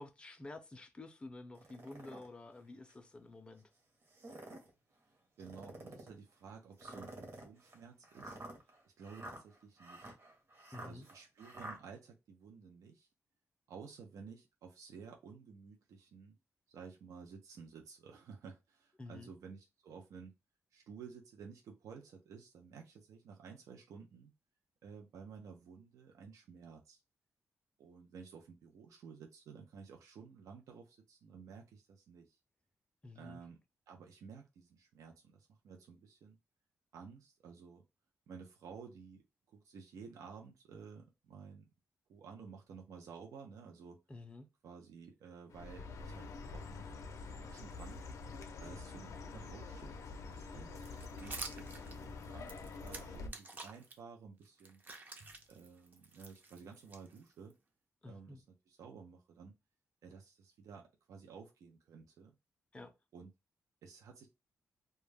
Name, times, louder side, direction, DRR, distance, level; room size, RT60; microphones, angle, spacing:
voice 1, 0.0-3.6 10.7-11.1 19.0-19.3 33.0-33.4 44.1-44.5 58.0-58.4 62.7-62.9, left 2 dB, 20° left, 0.5 m, -50 dB
sound 1, 1.6-2.3 2.9-3.0 4.0-4.7 5.4-6.2 6.8-11.8, right 1 dB, 50° right, 0.8 m, -50 dB
voice 2, 5.4-8.4 8.8-10.2 10.7-13.1 13.7-16.4 16.7-20.3 20.7-24.3 24.8-27.0 27.8-32.4 33.1-33.6 33.9-36.4 36.9-37.8 38.3-39.2 39.5-41.6 42.1-44.0 44.6-46.3 46.5-48.0 48.6-50.7 51.2-54.8 55.5-57.5 58.1-59.5 60.0-62.4 63.1-63.3 63.8-64.3, right 5 dB, 85° right, 0.5 m, -53 dB
Chirp tweet, 45.5-53.3, left 4 dB, 70° left, 0.5 m, -47 dB
sound 2, 50.8-53.9 54.4-57.5, right 3 dB, 35° right, 0.4 m, -49 dB
2.2 x 2.0 x 3.2 m
wide cardioid pair, 130°, 5 cm